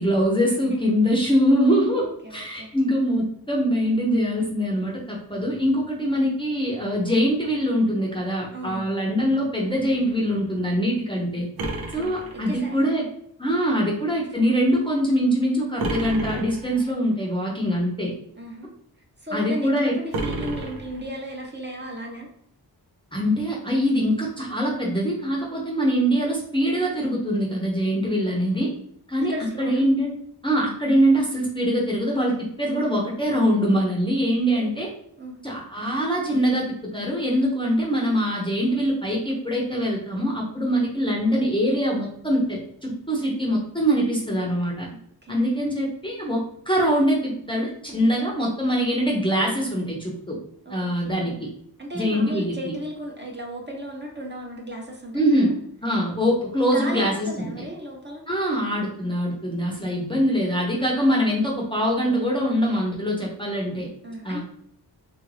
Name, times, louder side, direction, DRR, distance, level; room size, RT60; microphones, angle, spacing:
voice 1, 0.0-11.5 11.9-13.0 13.4-18.1 19.3-19.9 23.1-28.7 29.1-30.1 30.4-34.9 35.4-44.9 45.3-50.4 50.7-51.3 51.9-52.7 55.1-55.5 55.8-57.5 58.3-63.9 64.2-64.4, equal, 15° left, -2 dB, 0.7 m, -23 dB
voice 2, 1.9-2.8 8.5-9.1 11.7-13.1 18.4-18.7 19.2-22.3 29.3-29.9 34.5-34.8 35.2-35.4 44.9-45.5 50.6-51.4 51.8-55.6 56.7-58.2 64.0-64.4, equal, 30° right, -1 dB, 0.8 m, -36 dB
sound 1, 11.6-13.0 15.8-16.9 20.1-21.4, right 2 dB, 70° right, 0.6 m, -31 dB
3.0 x 2.5 x 3.2 m, 0.68 s
cardioid pair, 65°, 38 cm